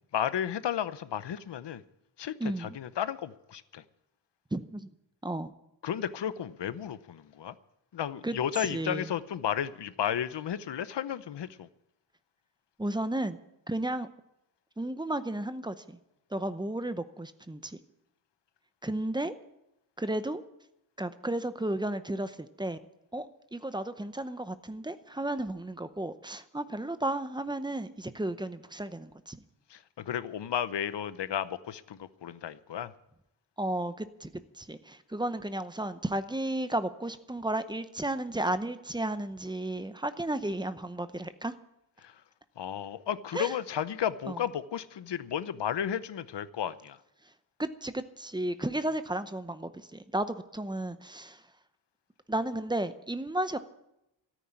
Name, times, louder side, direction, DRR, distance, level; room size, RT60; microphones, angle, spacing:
voice 1, 0.1-1.8 2.2-2.3 2.6-3.8 5.8-7.5 7.9-11.7 29.7-32.9 42.0-42.2 42.6-47.0, left 9 dB, 65° left, 14 dB, 0.8 m, -33 dB
voice 2, 2.4-2.8 4.5-4.9 5.2-5.5 8.2-9.1 12.8-13.4 13.7-14.1 14.8-16.0 16.3-17.8 18.8-19.3 20.0-20.4 21.0-22.8 23.1-29.4 33.6-41.5 43.3-43.5 44.3-44.4 47.2-47.3 47.6-51.5 52.3-53.6, right 1 dB, 10° right, 12 dB, 0.7 m, -33 dB
13.5 x 9.3 x 10.0 m, 0.85 s
wide cardioid pair, 160°, 46 cm